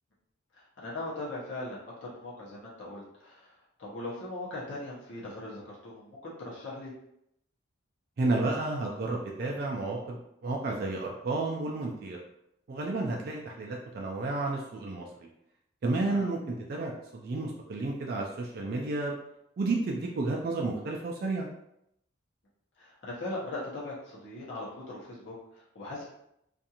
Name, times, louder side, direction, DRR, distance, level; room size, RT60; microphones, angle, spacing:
voice 1, 0.5-6.9 16.1-16.3 22.8-26.1, left 2 dB, 60° left, -6 dB, 0.8 m, -40 dB
voice 2, 8.2-12.2 12.7-15.1 15.8-19.2 19.6-21.5, right 2 dB, 45° right, -1 dB, 0.3 m, -31 dB
2.5 x 2.3 x 2.8 m, 0.78 s
head